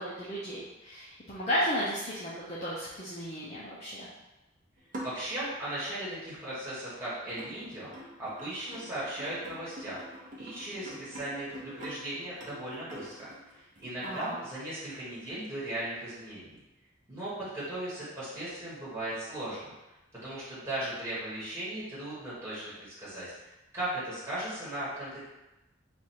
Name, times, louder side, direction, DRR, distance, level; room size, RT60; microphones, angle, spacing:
voice 1, 0.0-4.1 14.0-14.4, equal, 35° left, -8 dB, 0.6 m, -34 dB
sound 1, 4.8-5.8 6.6-6.7 7.4-14.9 15.3-15.4, equal, 40° right, 0.8 m, -45 dB
voice 2, 5.0-7.9 8.2-10.1 10.4-16.6 17.1-19.7 20.2-23.3 23.7-25.2, right 1 dB, 15° right, -10 dB, 1.4 m, -37 dB
3.3 x 2.5 x 4.3 m, 0.99 s
head